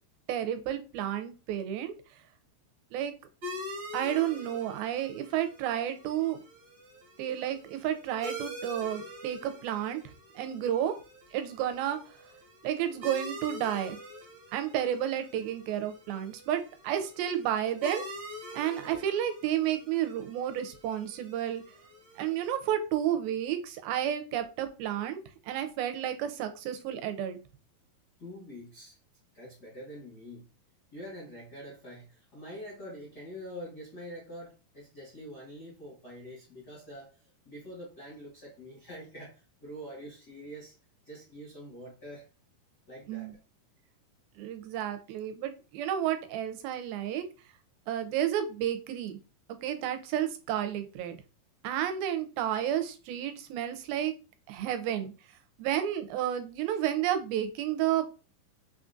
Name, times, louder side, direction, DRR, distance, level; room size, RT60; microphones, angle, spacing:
voice 1, 0.3-1.9 2.9-3.1 3.9-6.4 7.2-10.0 10.4-11.0 11.3-12.2 12.6-14.0 14.5-18.1 18.5-21.6 22.2-27.4 43.1-43.3 44.4-47.3 47.9-49.2 49.6-51.2 51.6-54.1 54.5-55.1 55.6-58.0, right 10 dB, 85° right, 9 dB, 2.4 m, -31 dB
sound 1, 3.4-22.6, equal, 55° right, 1.3 m, -45 dB
voice 2, 28.2-28.9 29.3-30.5 30.9-40.7 41.0-42.2 42.9-43.3, equal, 75° left, -5 dB, 0.9 m, -45 dB
5.6 x 2.4 x 2.5 m, 0.32 s
omnidirectional pair, 4.2 m